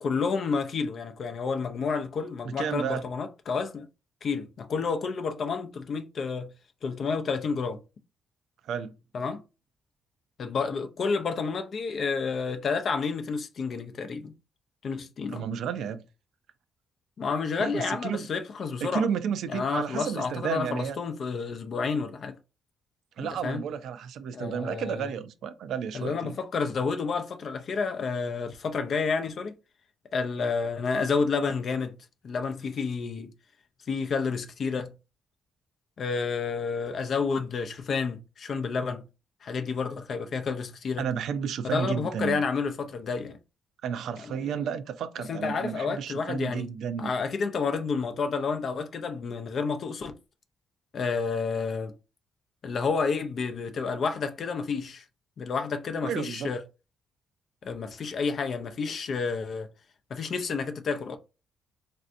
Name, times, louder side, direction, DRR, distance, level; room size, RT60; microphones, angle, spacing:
voice 1, 0.0-3.9 4.2-6.5 6.8-7.8 9.1-9.4 10.4-14.3 14.8-15.5 17.2-19.1 19.5-22.4 23.2-23.6 24.3-25.1 25.9-29.5 30.1-32.0 32.2-33.3 33.9-34.9 36.0-39.0 39.4-41.1 41.6-43.4 44.2-44.3 45.3-46.7 47.0-50.1 50.9-51.9 52.6-55.0 55.4-56.6 57.6-59.7 60.1-61.2, left 5 dB, 55° left, 0.4 m, -30 dB
voice 2, 2.4-3.0 8.6-8.9 15.3-16.0 17.6-18.3 18.8-21.0 23.2-26.4 41.0-42.4 43.8-47.1 56.0-56.5, right 7 dB, 75° right, 0.4 m, -32 dB
3.2 x 2.6 x 2.5 m
cardioid pair, 90°, 0 cm